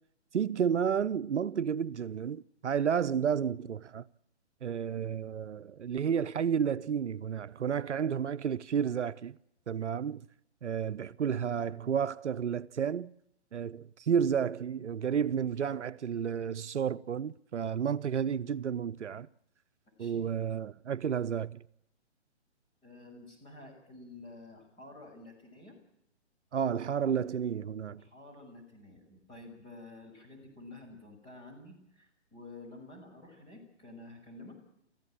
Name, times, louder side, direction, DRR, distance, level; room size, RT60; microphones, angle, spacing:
voice 1, 0.3-4.0 4.6-9.3 9.7-10.2 10.6-13.1 13.5-19.3 20.0-21.6 26.5-28.0, right 7 dB, 80° right, 0.8 m, -31 dB
voice 2, 22.8-25.8 27.9-34.6, left 2 dB, 15° left, 6.5 m, -50 dB
24.5 x 15.0 x 9.0 m
hypercardioid pair, 145°, 34 cm